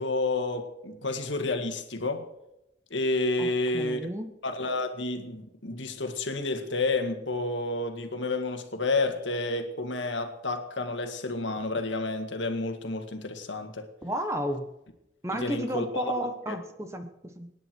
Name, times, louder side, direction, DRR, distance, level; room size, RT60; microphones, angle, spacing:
voice 1, 0.0-2.3 2.9-4.0 4.4-13.9 15.4-16.6, left 2 dB, 80° left, 1.9 m, -30 dB
voice 2, 3.4-4.3 14.0-14.7 15.2-17.5, equal, 15° right, 1.2 m, -33 dB
26.0 x 10.0 x 4.6 m
head